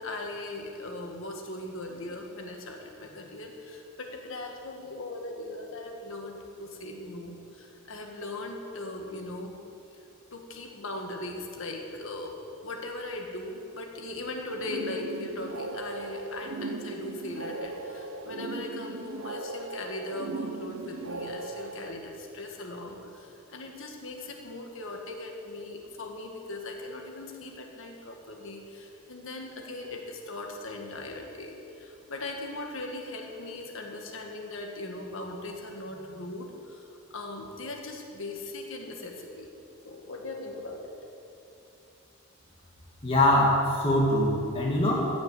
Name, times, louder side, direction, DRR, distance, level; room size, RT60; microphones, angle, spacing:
voice 1, 0.0-9.5 10.3-39.5 39.8-41.0, left 2 dB, 65° left, 2 dB, 1.7 m, -39 dB
sound 1, 14.6-21.9, right 3 dB, 70° right, 0.8 m, -38 dB
voice 2, 43.0-45.1, left 1 dB, 25° left, -4 dB, 1.8 m, -23 dB
14.5 x 6.2 x 8.2 m, 2.8 s
head